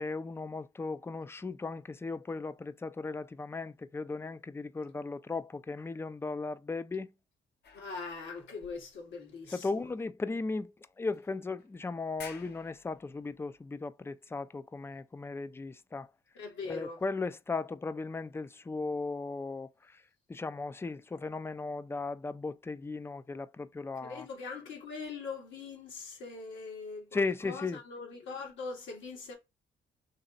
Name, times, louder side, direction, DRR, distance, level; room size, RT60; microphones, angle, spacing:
voice 1, 0.0-7.1 9.5-16.1 16.7-20.0 20.3-24.3 27.1-27.8, left 3 dB, 10° left, 0.3 m, -36 dB
sound 1, 7.6-9.6 10.3-10.4 11.1-11.7 12.1-13.6, left 5 dB, 55° left, 1.0 m, -53 dB
voice 2, 7.7-9.8 16.4-17.0 24.0-29.3, left 4 dB, 70° left, 2.0 m, -42 dB
3.9 x 3.1 x 3.9 m
cardioid pair, 90°, 20 cm